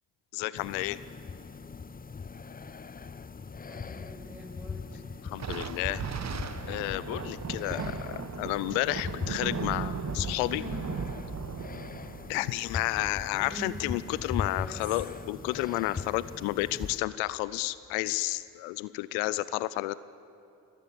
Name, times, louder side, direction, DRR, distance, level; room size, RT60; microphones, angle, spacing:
voice 1, 0.3-1.0 5.2-6.0 6.7-10.6 12.3-19.9, left 18 dB, 80° left, 17 dB, 0.5 m, -31 dB
sound 1, 0.6-17.0, left 5 dB, 20° left, 0.7 m, -40 dB
voice 2, 3.7-4.9 10.6-10.9 13.3-13.9 14.5-15.0, equal, 5° right, 0 dB, 6.2 m, -44 dB
Thunder, 5.3-14.1, right 6 dB, 35° right, 1.2 m, -37 dB
22.0 x 17.0 x 7.3 m, 2.6 s
hypercardioid pair, 45°, 46 cm